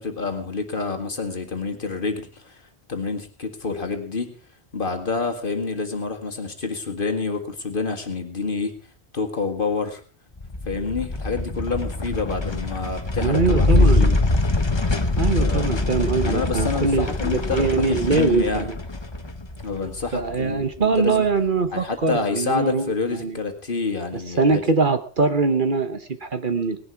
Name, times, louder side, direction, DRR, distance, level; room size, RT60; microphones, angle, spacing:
voice 1, 0.0-2.6 2.9-4.3 4.7-8.7 9.1-10.0 10.7-14.2 15.4-15.6 16.2-18.7 19.6-21.2 21.7-24.6, left 4 dB, 50° left, 5 dB, 2.0 m, -28 dB
sound 1, 10.4-21.0, left 2 dB, 25° left, 1.1 m, -24 dB
voice 2, 13.2-14.1 15.2-18.8 19.8-23.4 24.4-26.8, right 4 dB, 50° right, 9 dB, 1.3 m, -22 dB
18.5 x 11.0 x 4.7 m, 0.41 s
omnidirectional pair, 1.1 m